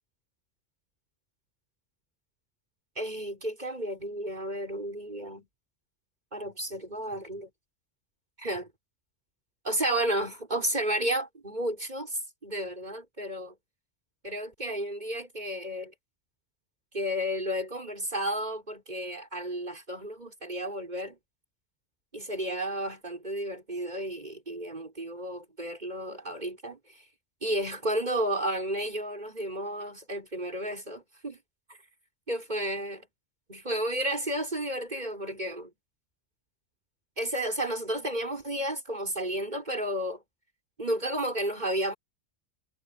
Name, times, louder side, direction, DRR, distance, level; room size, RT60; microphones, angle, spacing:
voice 1, 3.0-5.5 6.3-7.5 8.4-8.7 9.6-13.6 14.2-15.9 16.9-21.2 22.1-26.8 27.4-31.4 31.7-31.8 32.3-33.1 33.5-35.7 37.2-40.2 40.8-41.9, right 1 dB, 35° right, 5.5 m, -32 dB
omnidirectional pair, 1.2 m